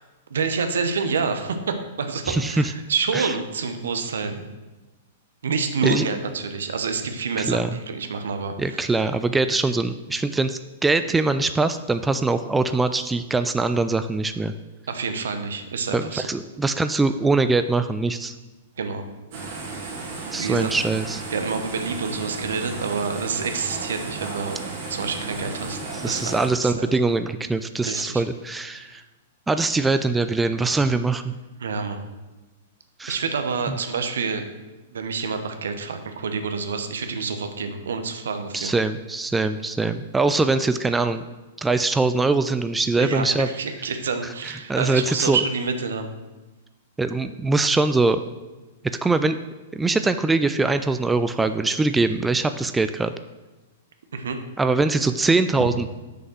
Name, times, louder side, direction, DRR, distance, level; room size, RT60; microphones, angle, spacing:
voice 1, 0.3-4.5 5.4-8.9 14.9-16.3 18.8-19.0 20.4-20.8 21.3-25.8 26.0-26.4 26.6-27.0 27.9-28.2 28.7-28.9 31.6-32.0 33.1-34.4 34.9-38.7 43.0-46.1 54.1-54.4 55.6-55.7, right 5 dB, 70° right, 7 dB, 0.9 m, -28 dB
voice 2, 2.3-2.7 3.1-3.3 5.8-6.2 7.4-7.7 8.6-14.5 15.9-18.3 20.3-21.2 25.9-29.0 29.5-31.3 33.0-33.2 33.7-33.8 38.5-41.2 41.6-43.5 44.7-45.4 47.0-48.2 49.0-49.4 49.7-53.1 54.6-55.9, right 3 dB, 10° right, 10 dB, 0.3 m, -22 dB
sound 1, 19.3-26.5, right 3 dB, 50° right, 2.4 m, -34 dB
6.6 x 5.4 x 6.2 m, 1.1 s
figure-of-eight pair, 105°, 0 cm